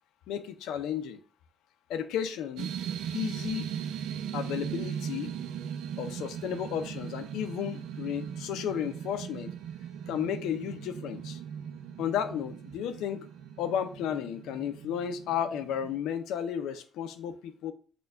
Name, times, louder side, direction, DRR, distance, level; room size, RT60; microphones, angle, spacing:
voice 1, 0.3-1.2 1.9-2.7 3.1-3.7 4.3-5.3 6.0-9.5 10.1-11.4 12.0-13.3 13.6-17.7, left 9 dB, 90° left, 0.5 m, -33 dB
sound 1, 2.6-16.0, right 8 dB, 90° right, 0.4 m, -39 dB
6.6 x 2.3 x 3.4 m
cardioid pair, 90°, 0 cm